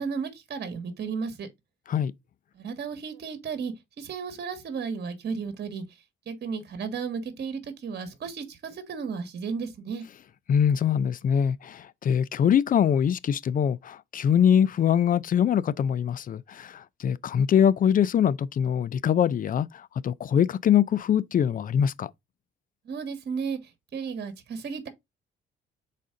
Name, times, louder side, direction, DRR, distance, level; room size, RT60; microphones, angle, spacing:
voice 1, 0.0-1.5 2.5-5.8 6.3-10.0 22.8-23.6 23.9-24.9, right 5 dB, 55° right, 1.5 m, -34 dB
voice 2, 10.5-22.1, left 8 dB, 45° left, 0.5 m, -23 dB
6.1 x 4.2 x 3.7 m
cardioid pair, 90°, 20 cm